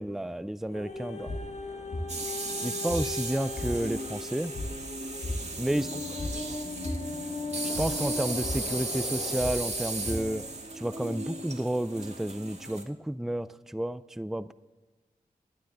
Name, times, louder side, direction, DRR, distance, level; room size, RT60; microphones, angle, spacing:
voice 1, 0.0-1.4 2.6-4.5 5.6-5.9 7.8-10.4 10.7-14.5, right 1 dB, ahead, 15 dB, 0.4 m, -31 dB
sound 1, 0.6-10.4, left 1 dB, 80° left, 2.6 m, -39 dB
sound 2, 0.7-9.8 10.5-10.6, left 3 dB, 45° left, 1.8 m, -39 dB
sound 3, 2.1-12.8, right 2 dB, 45° right, 2.0 m, -36 dB
voice 2, 5.4-6.8, right 3 dB, 85° right, 1 dB, 2.2 m, -48 dB
17.0 x 11.5 x 3.5 m, 1.3 s
cardioid pair, 50°, 16 cm